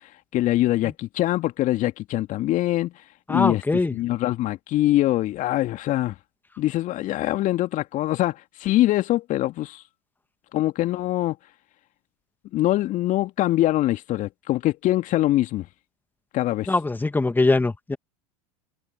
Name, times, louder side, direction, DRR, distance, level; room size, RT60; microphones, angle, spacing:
voice 1, 0.3-2.9 3.3-3.6 3.9-6.1 6.6-9.8 10.5-11.4 12.5-15.7 16.3-16.7, left 15 dB, 45° left, 2.1 m, -23 dB
voice 2, 3.3-3.9 16.7-18.0, left 3 dB, 10° left, 2.4 m, -22 dB
figure-of-eight pair, 80°, 19 cm